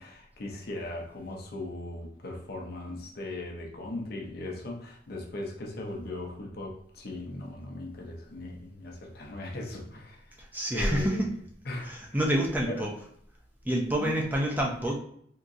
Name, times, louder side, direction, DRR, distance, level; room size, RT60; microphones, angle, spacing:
voice 1, 0.0-10.4 10.7-11.3 11.6-12.2 12.6-12.9 14.0-14.1, left 2 dB, 55° left, 0 dB, 0.7 m, -38 dB
voice 2, 10.4-11.3 11.8-12.9 13.6-15.0, right 1 dB, 10° right, -1 dB, 0.6 m, -28 dB
3.7 x 2.8 x 2.6 m, 0.67 s
head